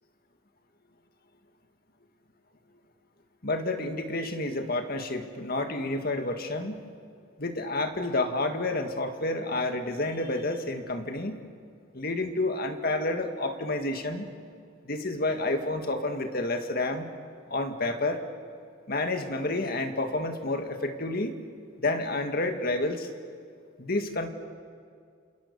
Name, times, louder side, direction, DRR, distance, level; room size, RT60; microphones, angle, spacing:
voice 1, 3.4-6.8 7.4-11.4 11.9-14.3 14.8-17.1 17.5-18.2 18.9-21.3 21.8-23.1 23.8-24.3, left 2 dB, 50° left, 6 dB, 2.0 m, -29 dB
28.0 x 27.5 x 7.0 m, 2.2 s
head